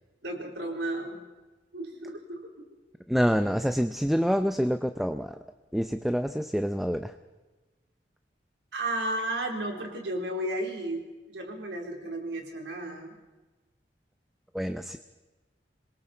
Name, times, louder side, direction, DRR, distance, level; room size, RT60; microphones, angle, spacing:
voice 1, 0.2-1.2 1.7-2.7 8.7-13.1, right 1 dB, 80° right, 1 dB, 4.2 m, -33 dB
voice 2, 3.1-5.4 5.7-7.1 14.5-15.0, equal, ahead, 8 dB, 0.6 m, -27 dB
26.5 x 22.0 x 4.5 m, 1.2 s
head